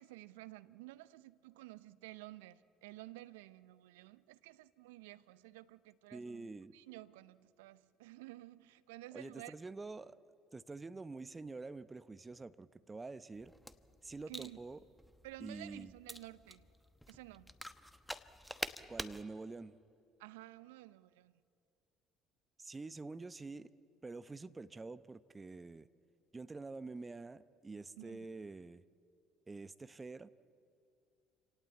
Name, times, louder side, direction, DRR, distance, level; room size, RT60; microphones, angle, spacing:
voice 1, 0.0-9.5 14.3-14.6 15.2-16.7 17.1-17.5 20.2-21.4 28.0-28.3, right 18 dB, 75° right, 0.6 m, -52 dB
voice 2, 6.1-6.8 9.1-10.2 10.5-13.5 14.0-14.8 15.4-15.9 18.9-19.8 22.6-23.7 24.0-25.9 26.3-28.8 29.5-30.3, right 3 dB, 20° right, 0.9 m, -47 dB
sound 1, 13.3-19.2, equal, ahead, 1.1 m, -47 dB
28.5 x 18.0 x 8.5 m
hypercardioid pair, 60°, 0 cm